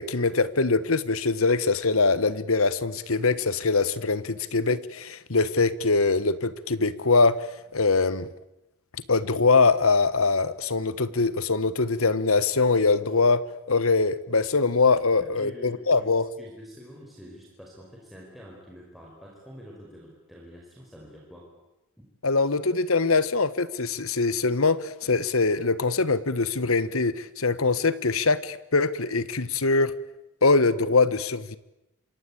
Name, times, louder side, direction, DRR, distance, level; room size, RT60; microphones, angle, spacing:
voice 1, 0.0-8.3 9.1-13.4 13.7-16.2 22.2-29.9 30.4-31.6, left 3 dB, 80° left, 15 dB, 1.5 m, -23 dB
voice 2, 15.2-16.1 16.4-21.5 22.0-22.1, equal, ahead, -3 dB, 5.2 m, -46 dB
27.0 x 24.5 x 8.7 m, 0.91 s
head